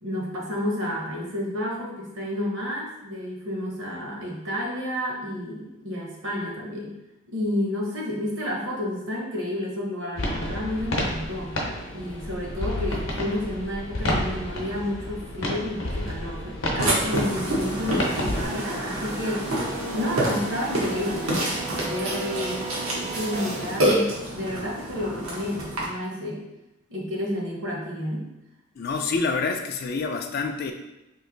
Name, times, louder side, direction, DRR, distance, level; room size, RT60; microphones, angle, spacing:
voice 1, 0.0-6.9 7.3-11.6 11.9-19.5 19.9-22.6 22.9-26.5 26.9-28.3, left 1 dB, 60° right, -2 dB, 0.9 m, -30 dB
sound 1, 10.2-18.4, left 1 dB, 65° left, 0.7 m, -30 dB
sound 2, 14.3-26.1, right 2 dB, 30° right, 0.5 m, -38 dB
Burping eructation, 16.8-25.8, right 1 dB, 85° right, 0.9 m, -28 dB
voice 2, 28.8-30.7, left 4 dB, 45° left, 5 dB, 0.3 m, -27 dB
3.1 x 2.5 x 3.8 m, 0.92 s
head